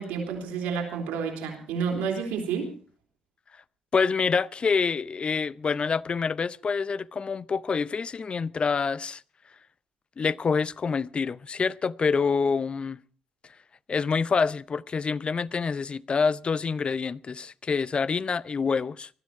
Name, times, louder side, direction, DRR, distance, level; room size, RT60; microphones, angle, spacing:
voice 1, 0.0-2.7, right 6 dB, 80° right, 3.8 m, -30 dB
voice 2, 3.9-9.2 10.2-13.0 13.9-19.1, left 5 dB, 40° left, 0.6 m, -26 dB
19.5 x 12.5 x 4.8 m
hypercardioid pair, 50°, 3 cm